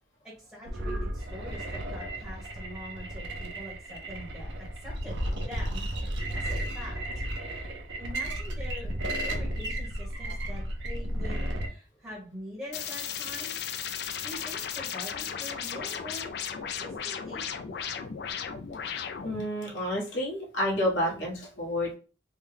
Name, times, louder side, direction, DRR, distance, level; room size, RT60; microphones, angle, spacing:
voice 1, 0.2-4.5 4.8-7.3 7.5-8.9 9.2-13.6 14.2-18.0, left 1 dB, 10° right, -5 dB, 1.0 m, -45 dB
sound 1, 0.7-11.7, right 1 dB, 80° right, 0.7 m, -33 dB
sound 2, 12.7-19.5, left 7 dB, 60° left, 0.3 m, -35 dB
voice 2, 19.2-22.0, left 1 dB, 85° left, -3 dB, 1.4 m, -30 dB
3.5 x 2.2 x 3.2 m, 0.37 s
head